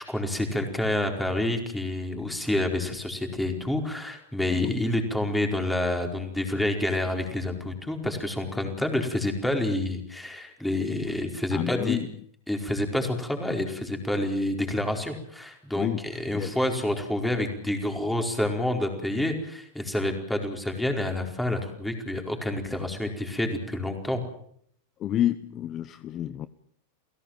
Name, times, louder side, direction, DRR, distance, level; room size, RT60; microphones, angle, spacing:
voice 1, 0.0-12.0 12.5-24.2, left 1 dB, 5° left, 4 dB, 4.8 m, -28 dB
voice 2, 11.5-12.1 15.7-16.0 16.3-16.6 25.0-26.5, left 11 dB, 35° left, 14 dB, 1.0 m, -29 dB
29.5 x 17.0 x 7.4 m, 0.66 s
hypercardioid pair, 125°, 0 cm